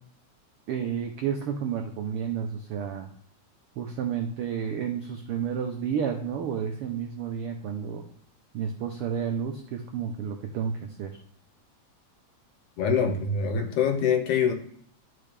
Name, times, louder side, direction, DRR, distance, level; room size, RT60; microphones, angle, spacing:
voice 1, 0.7-3.1 3.8-8.0 8.5-11.2, right 7 dB, 90° right, 4 dB, 1.2 m, -31 dB
voice 2, 12.8-14.5, left 6 dB, 90° left, 5 dB, 2.5 m, -24 dB
11.0 x 4.8 x 3.3 m, 0.62 s
omnidirectional pair, 3.3 m